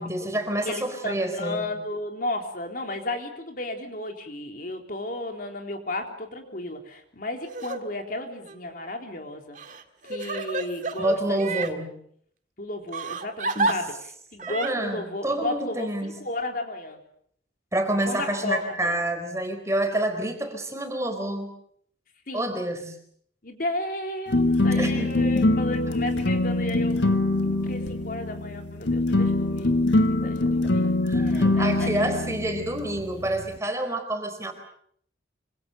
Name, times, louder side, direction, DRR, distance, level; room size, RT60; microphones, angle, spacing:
voice 1, 0.0-1.8 11.0-12.0 13.6-13.8 14.5-16.2 17.7-21.5 22.3-22.9 24.8-25.3 30.4-34.5, right 1 dB, 15° right, 6 dB, 4.3 m, -28 dB
voice 2, 0.6-9.6 10.0-11.4 12.6-13.9 14.3-17.0 18.1-19.0 22.3-22.5 23.4-27.0 27.4-29.8 30.1-32.1, left 2 dB, 50° left, 3 dB, 3.7 m, -33 dB
Crying sobbing, 7.5-7.8 8.4-8.5 9.6-11.7 12.9-13.7 14.4-14.7, right 3 dB, 45° right, 2.0 m, -29 dB
sound 1, 24.3-33.6, left 2 dB, 75° left, 1.6 m, -24 dB
26.0 x 26.0 x 6.8 m, 0.66 s
head